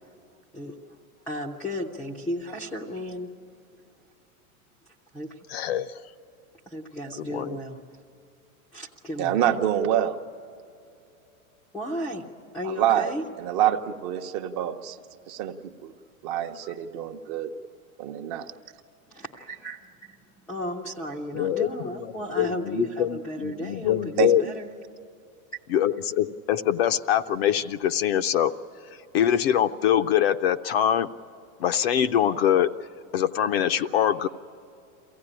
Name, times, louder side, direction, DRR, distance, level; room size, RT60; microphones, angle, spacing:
voice 1, 0.5-1.0 1.3-3.3 5.1-5.3 6.7-7.8 8.7-9.5 11.7-12.2 12.5-13.2 19.1-24.1 24.4-24.7, equal, 5° left, -4 dB, 0.5 m, -34 dB
voice 2, 5.5-6.0 7.2-7.6 21.3-21.7 22.4-24.4 25.7-28.5 29.1-31.1 31.6-32.7 33.1-34.3, left 10 dB, 45° left, 10 dB, 0.5 m, -23 dB
voice 3, 9.2-10.2 12.6-15.0 15.3-15.9 16.2-17.5 18.0-18.5 24.2-24.5, right 10 dB, 35° right, 6 dB, 0.8 m, -26 dB
23.5 x 16.0 x 9.9 m, 2.7 s
supercardioid pair, 160°, 43 cm